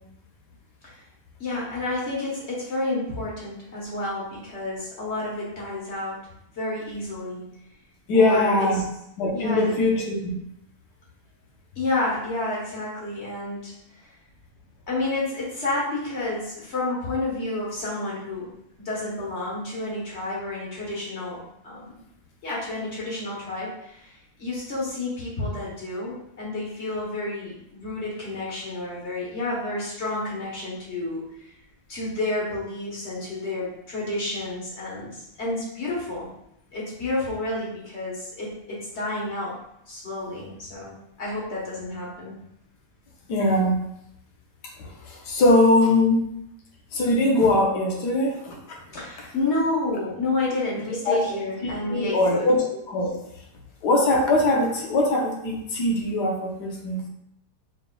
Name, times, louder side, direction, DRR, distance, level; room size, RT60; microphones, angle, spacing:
voice 1, 1.4-6.2 6.5-7.4 8.1-8.8 9.3-9.7 11.7-14.1 14.9-18.5 18.8-21.9 22.4-31.5 31.9-36.3 36.7-39.6 39.9-42.3 48.9-52.5, left 2 dB, 45° left, -5 dB, 1.4 m, -30 dB
voice 2, 8.1-8.8 9.2-10.3 43.3-43.8 44.8-46.2 46.9-48.8 51.1-51.2 51.6-53.2 53.8-57.0, left 2 dB, 80° left, 0 dB, 1.4 m, -21 dB
4.9 x 3.4 x 2.2 m, 0.79 s
omnidirectional pair, 1.7 m